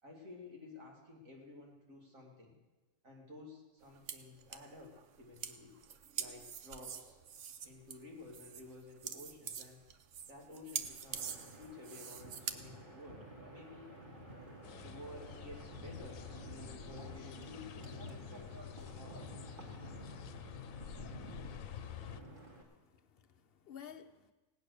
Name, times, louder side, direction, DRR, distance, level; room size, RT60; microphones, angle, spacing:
voice 1, 0.0-2.6 3.0-5.8 6.2-7.2 7.6-9.8 10.2-13.9 14.8-19.2, left 2 dB, 90° right, -1 dB, 3.1 m, -53 dB
sound 1, 3.8-12.5, right 8 dB, 70° right, 1.1 m, -45 dB
Wind, 10.8-22.6, right 1 dB, 40° right, 2.4 m, -51 dB
sound 2, 14.6-22.2, left 10 dB, 90° left, 1.0 m, -49 dB
voice 2, 22.1-24.3, left 8 dB, 50° left, 8 dB, 0.9 m, -55 dB
17.5 x 8.9 x 6.6 m, 1.2 s
omnidirectional pair, 1.4 m